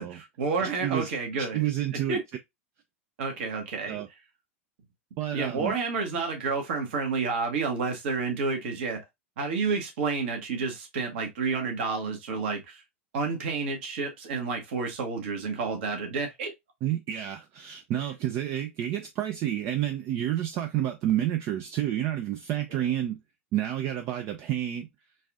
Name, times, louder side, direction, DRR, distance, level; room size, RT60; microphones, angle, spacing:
voice 1, 0.0-1.6 2.1-2.2 3.2-4.0 5.3-9.0 9.4-12.8 13.1-16.5, right 4 dB, 65° right, 1.2 m, -30 dB
voice 2, 0.6-1.1 1.5-2.2 3.9-4.1 5.2-5.7 16.8-23.2 23.5-24.9, right 12 dB, 40° right, 0.4 m, -29 dB
4.0 x 2.5 x 2.4 m
hypercardioid pair, 90°, 7 cm